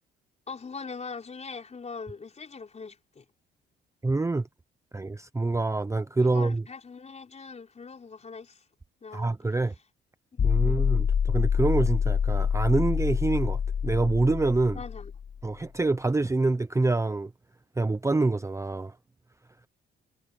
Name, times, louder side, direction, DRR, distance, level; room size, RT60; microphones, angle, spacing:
voice 1, 0.5-3.2 6.2-8.6 9.0-9.3 10.3-10.8 14.7-15.1, left 4 dB, 35° left, 4.6 m, -41 dB
voice 2, 4.0-4.5 4.9-6.6 9.1-9.7 10.4-14.8 15.4-17.3 17.8-19.0, right 3 dB, 15° right, 0.8 m, -26 dB
sound 1, 10.4-15.4, left 7 dB, 50° left, 2.8 m, -26 dB
cardioid pair, 90°, 20 cm